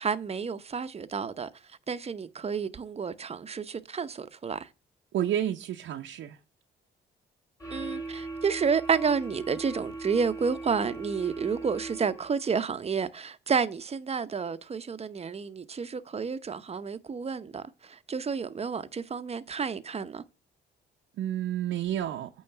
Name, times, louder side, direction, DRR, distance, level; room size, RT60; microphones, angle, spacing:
voice 1, 0.0-1.5 1.9-4.7 7.7-20.2, right 6 dB, 30° right, 0.8 m, -30 dB
voice 2, 5.1-6.4 21.2-22.3, right 11 dB, 75° right, 0.8 m, -30 dB
sound 1, 7.6-12.4, right 3 dB, 15° left, 2.3 m, -39 dB
8.7 x 3.2 x 5.7 m
cardioid pair, 90°, 20 cm